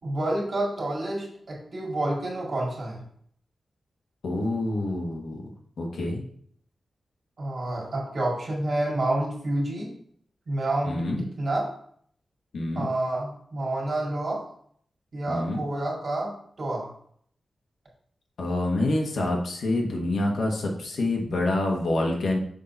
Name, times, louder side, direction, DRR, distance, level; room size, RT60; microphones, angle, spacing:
voice 1, 0.0-3.0 7.4-9.9 10.5-11.7 12.7-14.4 15.1-16.3 16.6-16.9, right 1 dB, 50° right, -3 dB, 2.2 m, -29 dB
voice 2, 4.2-5.4 5.8-6.2 10.8-11.2 12.5-12.9 15.3-15.6 18.4-22.4, left 2 dB, 80° left, 0 dB, 1.2 m, -27 dB
6.5 x 3.9 x 4.3 m, 0.62 s
wide cardioid pair, 150°, 0 cm